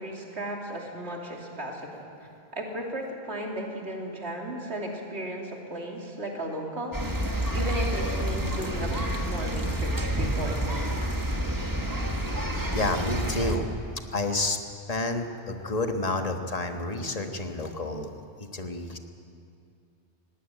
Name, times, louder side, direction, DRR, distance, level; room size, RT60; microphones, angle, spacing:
voice 1, 0.0-7.1 7.5-11.0, right 1 dB, 85° right, 0 dB, 3.1 m, -35 dB
sound 1, 6.9-13.6, right 1 dB, 20° right, 1.5 m, -29 dB
voice 2, 12.7-13.7 14.1-14.6 14.9-18.1 18.5-19.0, left 2 dB, 35° left, 5 dB, 1.4 m, -29 dB
19.5 x 16.0 x 9.1 m, 2.5 s
omnidirectional pair, 1.1 m